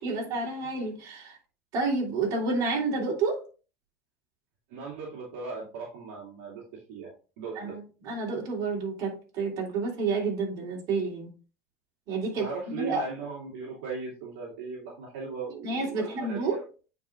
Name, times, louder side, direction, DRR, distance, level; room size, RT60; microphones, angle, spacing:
voice 1, 0.0-1.4 1.7-3.5 7.6-11.3 12.1-13.0 15.6-16.6, right 3 dB, 55° right, 3.3 m, -30 dB
voice 2, 4.7-6.6 6.9-7.8 12.4-16.7, right 4 dB, 80° right, 2.4 m, -38 dB
9.1 x 4.7 x 2.5 m
supercardioid pair, 115°, 7 cm